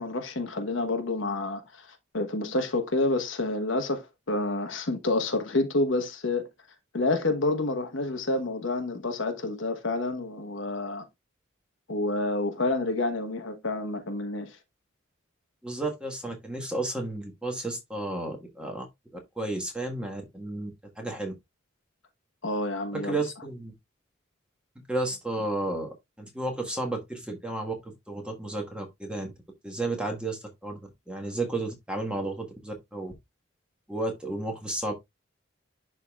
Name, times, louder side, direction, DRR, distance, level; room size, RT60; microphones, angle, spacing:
voice 1, 0.0-1.9 2.1-6.5 6.9-11.1 11.9-14.6 22.4-23.2, left 2 dB, 70° left, 1.2 m, -28 dB
voice 2, 15.6-18.9 19.1-20.7 21.0-21.3 22.9-23.7 24.9-29.3 29.6-30.8 31.1-33.1 33.9-34.9, right 2 dB, 5° right, 1.4 m, -32 dB
11.0 x 3.7 x 2.3 m
head